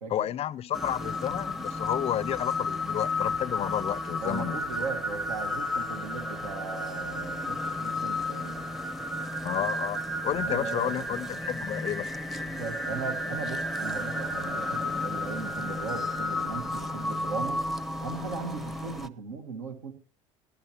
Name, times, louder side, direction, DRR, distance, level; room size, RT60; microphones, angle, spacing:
voice 1, 0.1-4.6 9.4-12.1, left 11 dB, 35° left, 0.5 m, -31 dB
sound 1, 0.7-19.1, left 1 dB, ahead, 0.7 m, -32 dB
voice 2, 4.2-8.7 10.4-10.9 12.6-17.6 18.0-19.9, right 4 dB, 75° right, 1.7 m, -38 dB
19.0 x 12.0 x 2.9 m
hypercardioid pair, 70°, 17 cm